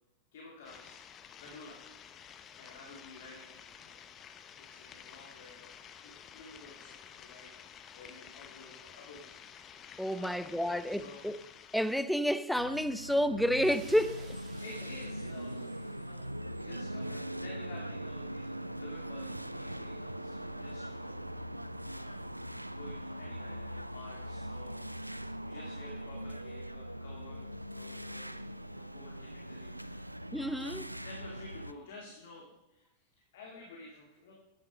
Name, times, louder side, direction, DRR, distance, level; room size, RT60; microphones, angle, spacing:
voice 1, 0.3-1.0 1.4-1.8 2.6-4.0 4.6-5.7 6.0-9.3 10.1-11.2 14.6-21.6 21.9-22.2 22.7-24.9 25.4-28.4 28.7-30.1 31.0-34.3, left 3 dB, 55° left, 2.2 m, -52 dB
sound 1, 0.6-12.0, left 8 dB, 30° left, 0.8 m, -52 dB
voice 2, 10.0-11.4 11.7-14.4 30.3-30.9, equal, ahead, 0.5 m, -30 dB
sound 2, 12.5-31.7, right 1 dB, 90° right, 0.4 m, -41 dB
sound 3, 13.4-16.5, right 2 dB, 20° right, 3.0 m, -57 dB
11.0 x 9.9 x 5.2 m
figure-of-eight pair, 90°, 0 cm